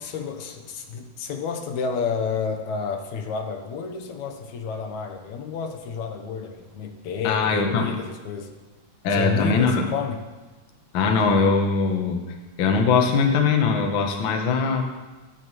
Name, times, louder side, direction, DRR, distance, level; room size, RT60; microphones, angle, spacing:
voice 1, 0.0-8.5 9.1-10.2, left 6 dB, 75° left, 5 dB, 2.4 m, -30 dB
voice 2, 7.2-7.9 9.0-9.9 10.9-14.8, left 4 dB, 55° left, 3 dB, 1.6 m, -21 dB
16.0 x 12.5 x 3.2 m, 1.2 s
omnidirectional pair, 3.3 m